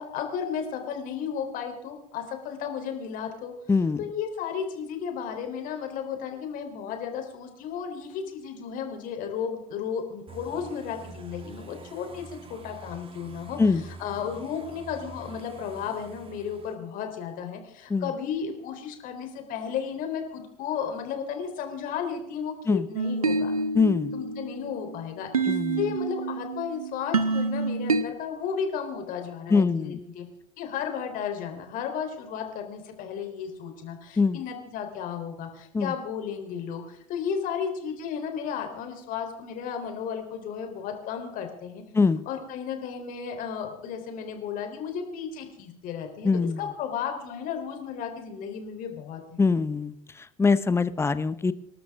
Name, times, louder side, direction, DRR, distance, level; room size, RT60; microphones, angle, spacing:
voice 1, 0.0-3.5 4.0-13.6 14.0-23.5 24.1-25.3 25.8-30.3 30.6-41.8 42.3-49.4, left 7 dB, 50° left, 5 dB, 3.6 m, -34 dB
voice 2, 3.7-4.0 13.6-13.8 17.9-18.1 22.7-22.9 23.7-24.1 25.5-25.9 29.5-30.0 34.2-34.4 35.7-35.9 41.9-42.2 46.2-46.6 49.4-51.5, left 4 dB, 15° left, 15 dB, 0.9 m, -23 dB
sound 1, 10.3-16.7, right 4 dB, 30° right, 2.4 m, -46 dB
sound 2, 22.9-28.0, right 3 dB, 85° right, 1.1 m, -28 dB
26.5 x 12.5 x 3.6 m, 0.80 s
figure-of-eight pair, 75°, 18 cm